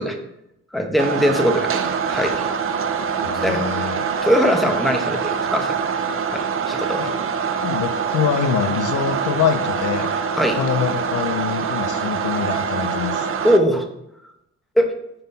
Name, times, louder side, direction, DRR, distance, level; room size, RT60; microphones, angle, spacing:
voice 1, 0.7-1.8 2.0-2.4 3.4-3.6 4.2-5.8 6.3-7.1 10.4-10.6 13.4-13.8 14.8-14.9, equal, ahead, 3 dB, 1.0 m, -20 dB
sound 1, 1.0-13.6, right 6 dB, 45° right, 0.6 m, -24 dB
voice 2, 3.2-4.0 7.0-7.1 7.6-10.1 10.6-13.3, left 8 dB, 80° left, 9 dB, 0.6 m, -24 dB
5.3 x 4.1 x 5.4 m, 0.83 s
cardioid pair, 90°, 30 cm